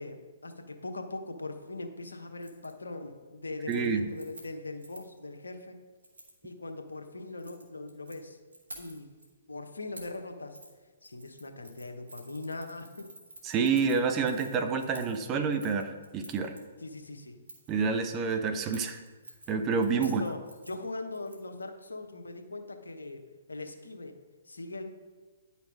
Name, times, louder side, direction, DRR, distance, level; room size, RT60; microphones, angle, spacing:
voice 1, 0.0-5.8 6.4-8.4 8.8-9.1 9.5-10.6 11.0-13.1 16.8-17.4 20.0-24.2 24.5-24.9, left 2 dB, 85° left, 6 dB, 1.1 m, -40 dB
Keys jangling, 2.4-2.7 3.1-3.3 3.6-5.2 6.0-6.4 7.2-8.2 8.5-9.2 9.9-10.2 10.5-10.7 11.0-16.6 17.5-17.8 18.6-21.6 21.9-22.0, right 1 dB, 85° right, 1.7 m, -51 dB
voice 2, 3.7-4.1 13.4-16.5 17.7-19.0 19.5-20.2, right 5 dB, 25° right, 6 dB, 0.8 m, -28 dB
10.0 x 5.8 x 4.7 m, 1.3 s
figure-of-eight pair, 130°, 0 cm